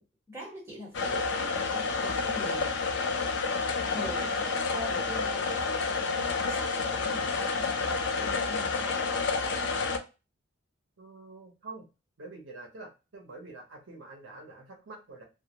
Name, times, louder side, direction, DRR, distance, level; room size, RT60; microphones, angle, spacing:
voice 1, 0.3-2.8 3.9-9.1, equal, 15° right, 1.0 m, -43 dB
sound 1, 0.9-10.0, left 4 dB, 55° left, 0.4 m, -29 dB
voice 2, 11.0-11.8 12.2-15.2, right 3 dB, 65° right, 0.7 m, -46 dB
2.2 x 2.0 x 2.7 m
head